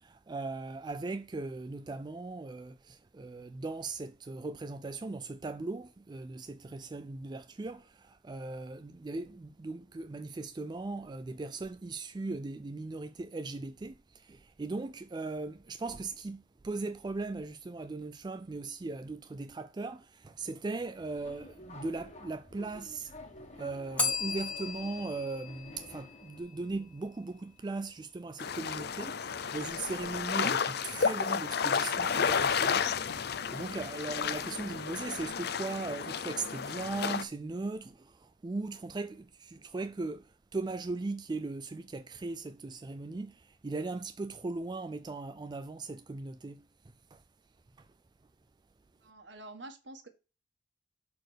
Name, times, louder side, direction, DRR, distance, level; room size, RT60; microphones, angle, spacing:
voice 1, 0.0-23.1 23.5-46.7 47.1-47.2 47.8-47.9, right 3 dB, 20° right, 0.3 m, -39 dB
Subway metro underground, 20.8-26.4, left 1 dB, 35° left, 1.5 m, -51 dB
Bell, 24.0-26.8, left 4 dB, 5° left, 1.4 m, -36 dB
sound 1, 28.4-37.2, left 6 dB, 55° left, 0.6 m, -32 dB
voice 2, 49.0-50.1, right 2 dB, 65° right, 1.5 m, -47 dB
6.3 x 4.3 x 6.4 m
head